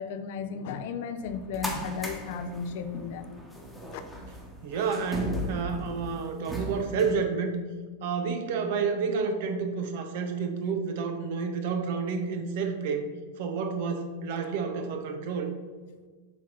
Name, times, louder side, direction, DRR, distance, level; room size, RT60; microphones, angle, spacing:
voice 1, 0.0-3.3, left 6 dB, 50° left, 9 dB, 0.6 m, -35 dB
sound 1, 1.2-7.1, equal, ahead, 1.3 m, -37 dB
voice 2, 4.6-7.6 8.0-13.1 13.4-15.5, right 5 dB, 50° right, 6 dB, 0.9 m, -30 dB
7.8 x 3.6 x 5.7 m, 1.4 s
figure-of-eight pair, 90°, 0 cm